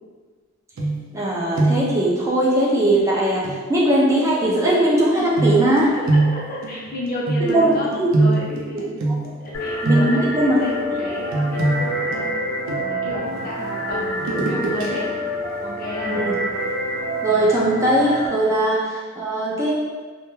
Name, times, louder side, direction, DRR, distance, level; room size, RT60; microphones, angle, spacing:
sound 1, 0.8-1.3 1.5-2.0 3.4-3.6 5.4-9.5 9.8-10.4 11.3-13.1 14.2-14.9 15.3-15.4, right 2 dB, 85° right, 0.4 m, -23 dB
voice 1, 1.1-5.8 7.4-7.7 8.0-8.1 8.8-8.9 9.8-10.6 10.9-11.0 16.1-16.4 17.2-19.7, right 1 dB, 15° right, -5 dB, 0.3 m, -19 dB
voice 2, 5.2-8.9 9.4-12.3 12.7-15.1 15.6-16.1 18.5-18.6, equal, 45° left, -4 dB, 0.6 m, -32 dB
sound 2, 9.5-18.3, equal, 85° left, 0.7 m, -27 dB
2.1 x 2.1 x 3.0 m, 1.5 s
head